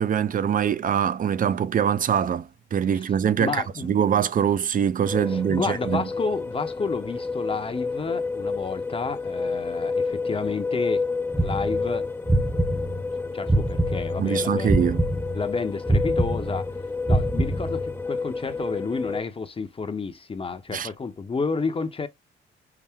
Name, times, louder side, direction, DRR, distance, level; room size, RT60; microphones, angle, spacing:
voice 1, 0.0-6.1 14.2-15.0 20.7-20.9, right 8 dB, 45° right, 0.5 m, -23 dB
voice 2, 3.4-3.9 5.3-11.1 11.4-12.1 13.3-14.9 15.3-16.7 17.1-22.1, left 4 dB, 30° left, 0.7 m, -30 dB
sound 1, 5.0-19.2, left 4 dB, 10° left, 0.3 m, -30 dB
sound 2, 11.3-14.3 14.7-18.0, right 1 dB, 5° right, 0.8 m, -24 dB
5.8 x 2.1 x 3.5 m
cardioid pair, 90°, 20 cm